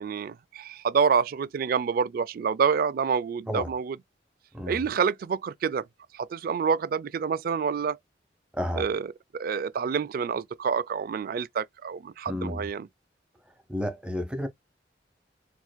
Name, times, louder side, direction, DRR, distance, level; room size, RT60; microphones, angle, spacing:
voice 1, 0.0-4.0 4.7-5.9 6.1-8.0 8.8-9.1 9.3-12.9, right 6 dB, 50° right, 0.3 m, -27 dB
voice 2, 8.5-8.9 12.3-12.7 13.7-14.5, equal, 5° right, 0.8 m, -31 dB
4.4 x 2.5 x 2.2 m
head